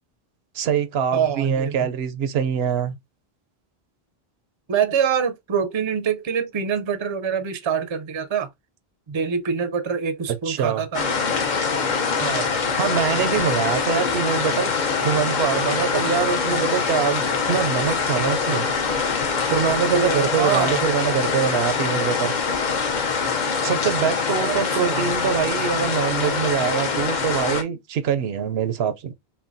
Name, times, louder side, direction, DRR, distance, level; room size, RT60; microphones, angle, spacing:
voice 1, 0.5-3.0 10.4-10.9 12.8-14.7 15.0-18.7 19.5-22.3 23.6-29.1, right 8 dB, 80° right, 0.8 m, -24 dB
voice 2, 1.1-1.8 4.7-8.5 9.1-11.0 12.2-12.5 19.9-20.8 24.4-25.1, right 7 dB, 35° right, 0.5 m, -25 dB
sound 1, 10.9-27.6, left 5 dB, 50° left, 0.8 m, -24 dB
5.8 x 2.2 x 2.6 m
omnidirectional pair, 1.0 m